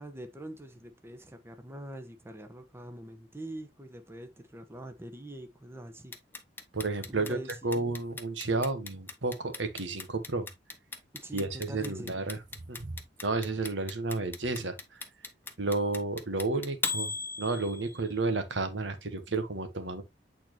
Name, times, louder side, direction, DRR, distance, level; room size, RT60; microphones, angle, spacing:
voice 1, 0.0-6.1 7.1-7.8 11.1-12.1, right 1 dB, 15° right, 1.0 m, -44 dB
Clock, 6.1-18.1, left 4 dB, 10° left, 0.9 m, -37 dB
voice 2, 6.7-7.4 7.6-10.5 11.3-12.4 12.7-12.9 13.2-14.8 15.6-20.0, right 3 dB, 85° right, 1.2 m, -31 dB
8.6 x 4.3 x 2.9 m
head